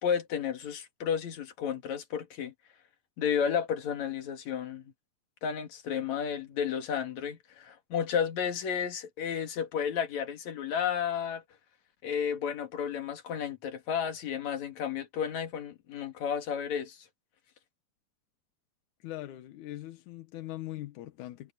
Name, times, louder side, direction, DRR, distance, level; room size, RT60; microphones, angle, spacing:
voice 1, 0.0-2.5 3.2-4.9 5.4-11.4 12.0-17.1, left 8 dB, 50° left, 2.9 m, -32 dB
voice 2, 19.0-21.5, left 15 dB, 70° left, 1.9 m, -41 dB
omnidirectional pair, 4.7 m